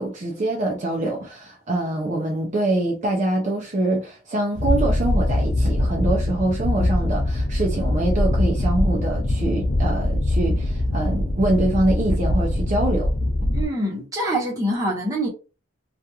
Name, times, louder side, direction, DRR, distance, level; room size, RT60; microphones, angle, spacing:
voice 1, 0.0-13.1, right 1 dB, 40° right, 0.5 m, -24 dB
sound 1, 4.6-13.7, left 1 dB, 45° left, 0.5 m, -22 dB
voice 2, 13.5-15.3, right 1 dB, 20° right, 0.9 m, -25 dB
2.8 x 2.4 x 2.3 m
head